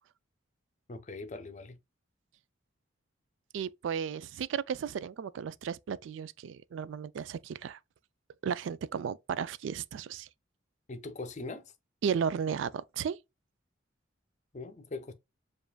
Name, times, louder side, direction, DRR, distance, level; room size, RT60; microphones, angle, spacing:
voice 1, 0.9-1.8 10.9-11.7 14.5-15.1, left 3 dB, 35° left, 0.5 m, -41 dB
voice 2, 3.5-7.8 8.4-10.3 12.0-13.2, right 7 dB, 70° right, 0.3 m, -34 dB
7.0 x 2.5 x 2.2 m
head